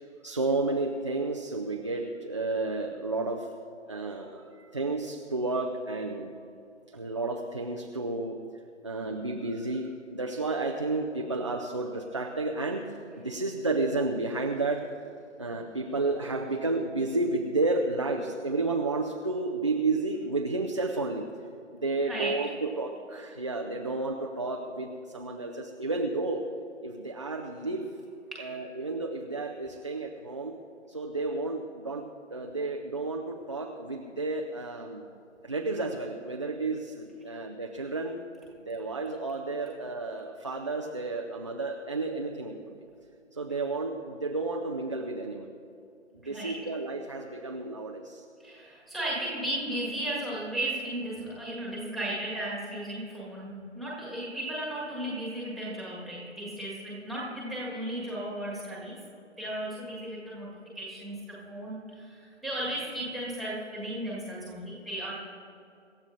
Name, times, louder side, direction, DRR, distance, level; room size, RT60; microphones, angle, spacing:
voice 1, 0.2-3.5 3.9-6.3 6.9-8.4 8.8-12.8 13.2-14.8 15.4-21.2 21.7-26.4 26.8-27.9 28.4-30.6 30.9-32.0 32.3-35.1 35.4-38.2 38.7-42.8 43.3-45.5 46.1-48.2, right 3 dB, 25° right, 1 dB, 0.5 m, -31 dB
voice 2, 22.1-22.5 28.3-28.5 46.2-46.7 48.4-59.0 59.4-65.1, right 1 dB, ahead, -6 dB, 1.5 m, -35 dB
26.0 x 13.5 x 2.6 m, 2.6 s
figure-of-eight pair, 150°, 38 cm